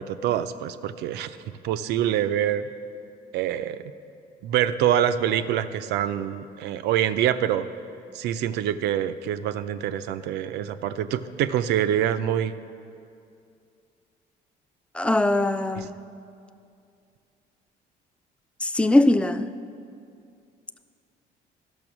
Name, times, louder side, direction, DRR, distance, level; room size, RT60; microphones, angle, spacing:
voice 1, 0.0-1.4 1.6-2.7 3.3-3.8 4.4-7.7 8.1-12.5 15.8-15.9, right 10 dB, 80° right, 0.5 m, -25 dB
voice 2, 14.9-15.9 18.6-19.5, left 1 dB, 5° left, 0.3 m, -21 dB
12.5 x 6.1 x 6.0 m
cardioid pair, 110°, 17 cm